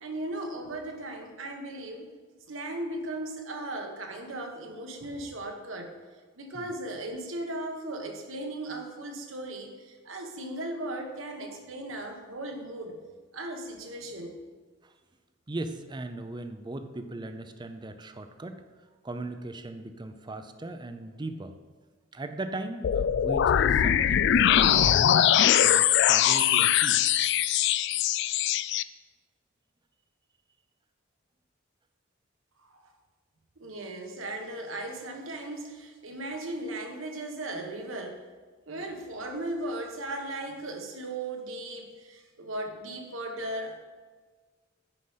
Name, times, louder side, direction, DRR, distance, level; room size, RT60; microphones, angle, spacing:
voice 1, 0.0-2.1 2.5-5.9 6.3-13.0 13.3-14.4 32.6-32.9 33.6-38.2 38.7-43.8, right 1 dB, 80° right, 3 dB, 1.3 m, -37 dB
voice 2, 15.5-18.6 19.0-21.6 22.1-27.0, right 2 dB, 20° right, 8 dB, 0.5 m, -38 dB
sound 1, 22.8-28.8, left 10 dB, 60° left, 0.3 m, -22 dB
9.8 x 5.0 x 5.5 m, 1.4 s
head